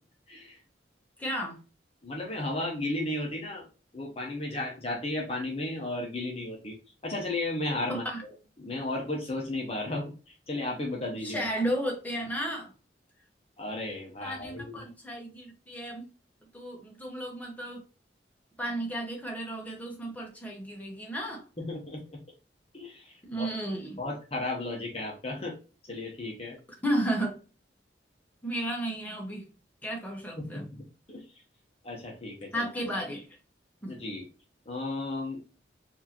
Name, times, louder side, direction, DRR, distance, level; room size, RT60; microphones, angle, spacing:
voice 1, 0.3-0.6 2.0-3.7 3.9-6.8 7.0-8.0 8.6-11.5 13.6-14.8 21.6-22.2 22.7-23.6 24.0-25.6 25.9-26.6 30.4-30.8 31.1-31.2 31.8-32.7 33.9-34.3 34.7-35.4, left 2 dB, 35° left, 1.0 m, -34 dB
voice 2, 1.2-1.6 7.9-8.2 11.2-12.7 14.2-16.0 16.5-17.8 18.6-21.4 23.2-24.0 26.8-27.3 28.4-29.5 29.8-30.6 32.5-33.2 33.8-33.9, right 1 dB, 10° left, 1.2 m, -33 dB
4.5 x 2.8 x 2.9 m
head